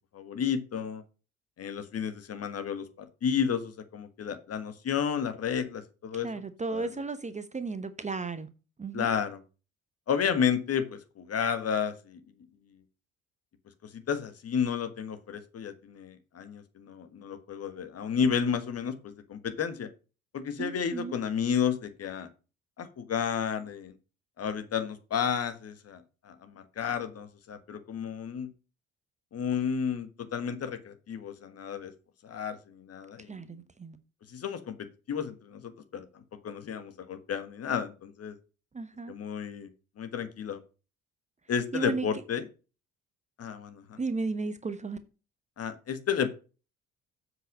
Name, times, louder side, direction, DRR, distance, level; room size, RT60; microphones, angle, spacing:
voice 1, 0.1-1.0 1.6-6.3 6.7-7.0 8.9-9.4 10.1-12.2 13.9-19.9 20.3-22.3 22.8-23.9 24.4-28.5 29.3-31.9 32.2-33.6 34.3-34.8 35.1-38.4 39.1-39.7 40.0-40.6 41.5-42.5 43.4-44.0 45.6-46.3, left 7 dB, 40° left, 1.6 m, -32 dB
voice 2, 6.2-8.5 8.8-9.1 20.6-21.2 33.3-34.0 38.7-39.1 41.7-42.1 44.0-45.0, right 3 dB, 20° right, 1.0 m, -34 dB
7.9 x 6.4 x 5.3 m
figure-of-eight pair, 50°, 39 cm